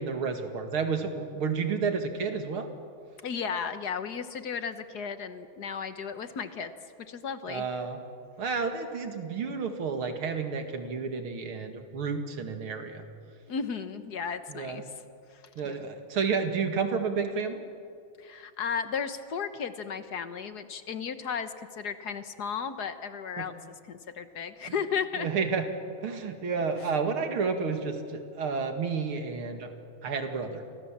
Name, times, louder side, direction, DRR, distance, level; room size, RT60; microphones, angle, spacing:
voice 1, 0.0-2.7 7.5-8.1 8.4-13.0 14.5-14.8 15.6-17.6 23.4-23.5 25.2-25.7 26.0-29.7 30.0-30.6, right 5 dB, 90° right, 5 dB, 3.0 m, -31 dB
voice 2, 3.2-6.7 7.1-7.7 13.5-14.8 15.3-15.9 18.2-23.5 23.9-25.3, left 6 dB, 55° left, 10 dB, 1.6 m, -34 dB
30.0 x 24.5 x 7.4 m, 2.4 s
omnidirectional pair, 2.3 m